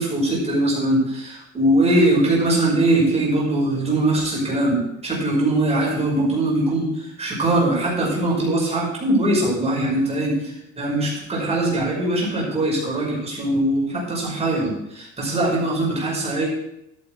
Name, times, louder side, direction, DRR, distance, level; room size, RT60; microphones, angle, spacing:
voice 1, 0.0-16.5, right 1 dB, 20° right, -4 dB, 5.6 m, -21 dB
13.0 x 9.1 x 4.7 m, 0.81 s
cardioid pair, 145°, 29 cm